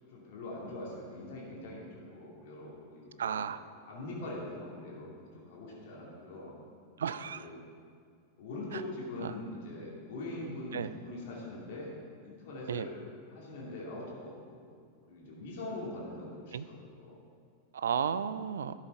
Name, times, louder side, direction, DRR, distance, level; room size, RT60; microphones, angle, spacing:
voice 1, 0.1-5.1 5.4-6.5 7.3-7.6 8.4-11.9 12.2-13.0 13.3-14.6 15.1-17.2, left 2 dB, 50° left, -4 dB, 2.4 m, -42 dB
voice 2, 3.2-3.6 7.0-7.5 9.2-9.3 10.7-10.9 12.7-12.9 16.5-16.6 17.7-18.7, right 7 dB, 65° right, 14 dB, 0.4 m, -33 dB
12.5 x 7.4 x 4.5 m, 2.1 s
figure-of-eight pair, 90°, 0 cm